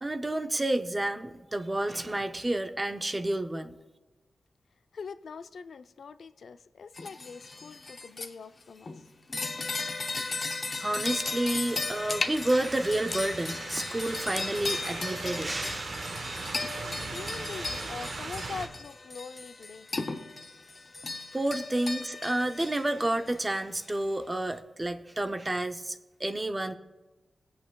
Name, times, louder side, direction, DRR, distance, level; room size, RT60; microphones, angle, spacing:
voice 1, 0.0-3.8 10.8-15.9 21.3-26.8, right 1 dB, 20° right, 8 dB, 0.5 m, -30 dB
voice 2, 4.9-9.1 17.1-19.9, left 5 dB, 80° left, 11 dB, 0.4 m, -43 dB
sound 1, 7.0-8.3 8.9-23.8, left 3 dB, 35° left, 0.6 m, -36 dB
sound 2, 10.8-18.7, right 3 dB, 60° right, 1.0 m, -40 dB
19.0 x 8.5 x 2.3 m, 1.1 s
wide cardioid pair, 150°, 0 cm